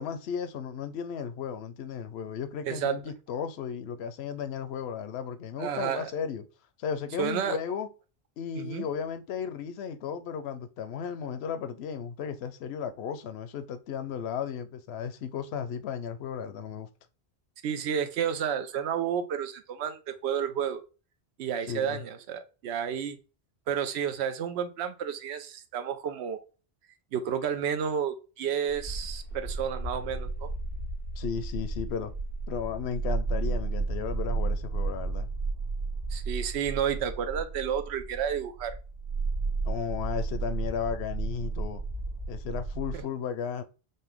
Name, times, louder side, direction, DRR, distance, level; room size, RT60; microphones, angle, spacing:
voice 1, 0.0-6.4 6.8-7.9 8.4-16.9 21.7-22.0 31.2-32.1 32.5-35.3 39.7-41.8 42.3-43.6, left 7 dB, 80° left, 0.8 m, -35 dB
voice 2, 2.7-3.0 5.6-6.1 7.2-7.6 8.6-8.9 17.6-20.8 21.4-23.2 23.7-26.4 27.1-30.5 36.1-38.8 42.9-43.0, right 8 dB, 90° right, 0.8 m, -31 dB
sound 1, 28.7-43.0, right 3 dB, 60° right, 1.6 m, -33 dB
5.3 x 2.2 x 3.5 m
omnidirectional pair, 1.1 m